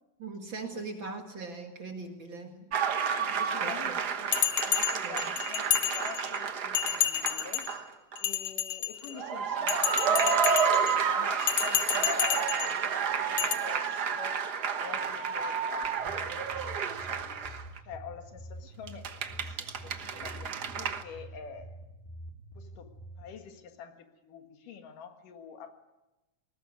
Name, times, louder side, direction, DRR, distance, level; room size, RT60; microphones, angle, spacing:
voice 1, 0.2-2.7 3.3-4.0 5.0-5.3, right 4 dB, 40° right, 4 dB, 2.3 m, -41 dB
voice 2, 0.7-1.3 3.2-7.9 8.2-14.5 14.8-21.8 22.6-25.7, left 6 dB, 80° left, 6 dB, 3.3 m, -47 dB
sound 1, 2.7-7.9 8.1-8.2 9.1-17.8 18.9-21.0, right 6 dB, 85° right, 0.8 m, -30 dB
Bell, 4.3-6.4 6.7-7.7 8.2-9.2 9.7-10.9 11.4-12.7 13.4-13.5, left 11 dB, 60° left, 1.7 m, -30 dB
sound 2, 15.8-23.2, right 1 dB, 20° left, 1.7 m, -47 dB
20.0 x 19.0 x 9.7 m, 1.0 s
omnidirectional pair, 3.7 m